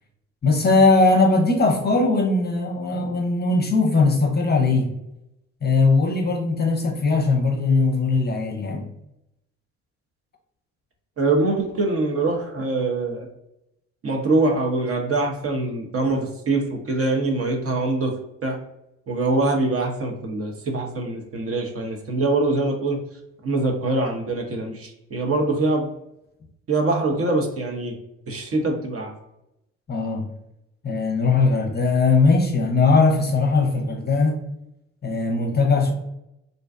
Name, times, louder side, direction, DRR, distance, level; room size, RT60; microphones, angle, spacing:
voice 1, 0.4-4.9 5.6-8.9 29.9-30.3 30.8-34.4 35.0-35.9, left 3 dB, 30° left, 0.6 m, -19 dB
voice 2, 11.2-13.3 14.0-18.6 19.1-23.0 23.4-25.9 26.7-28.0 28.3-29.1, right 2 dB, 40° right, 0.7 m, -23 dB
2.5 x 2.2 x 2.4 m
hypercardioid pair, 40°, 36 cm